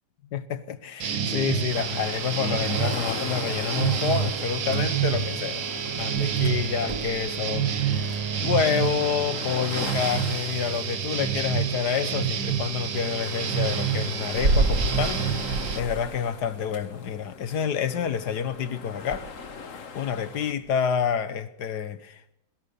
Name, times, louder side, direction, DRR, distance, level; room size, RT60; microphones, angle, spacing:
voice 1, 0.3-5.6 6.0-8.1 8.4-19.3 19.9-22.3, left 7 dB, 65° left, 1.5 m, -28 dB
sound 1, 1.0-15.8, right 8 dB, 85° right, 2.1 m, -28 dB
sound 2, 1.7-20.5, left 6 dB, 45° left, 1.5 m, -40 dB
sound 3, 4.5-21.2, right 2 dB, 60° right, 3.6 m, -34 dB
22.0 x 17.0 x 7.0 m
omnidirectional pair, 2.0 m